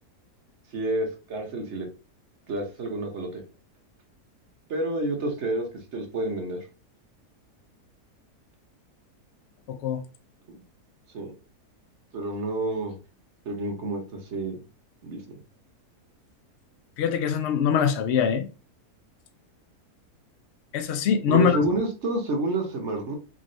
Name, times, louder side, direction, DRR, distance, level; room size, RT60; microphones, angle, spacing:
voice 1, 0.7-1.9 2.5-3.4 4.7-6.7 10.5-10.6 11.1-11.3 12.1-13.0 13.4-14.6 15.0-15.4 21.3-23.2, right 2 dB, 55° right, 1.0 m, -29 dB
voice 2, 9.7-10.0 17.0-18.5 20.7-21.6, left 8 dB, 80° left, 0.6 m, -23 dB
3.7 x 3.1 x 2.6 m
omnidirectional pair, 1.7 m